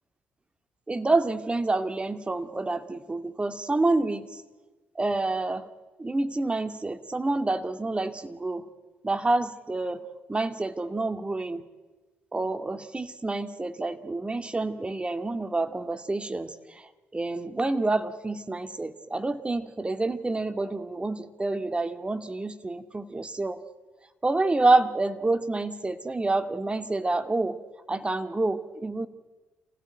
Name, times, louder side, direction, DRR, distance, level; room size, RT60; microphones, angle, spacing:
voice 1, 0.9-4.4 5.0-5.7 6.0-8.6 9.0-10.0 10.3-11.6 12.3-23.6 24.2-27.6 27.9-29.1, right 2 dB, 20° right, 9 dB, 2.1 m, -28 dB
28.5 x 15.5 x 9.2 m, 1.3 s
figure-of-eight pair, 40°, 5 cm